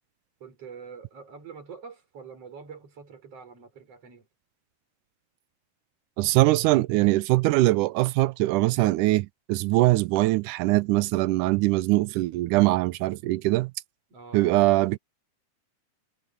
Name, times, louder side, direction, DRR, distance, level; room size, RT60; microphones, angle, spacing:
voice 1, 0.4-4.3 14.1-14.5, right 6 dB, 50° right, 6.1 m, -45 dB
voice 2, 6.2-13.7 14.3-15.0, right 19 dB, 80° right, 2.0 m, -22 dB
omnidirectional pair, 3.7 m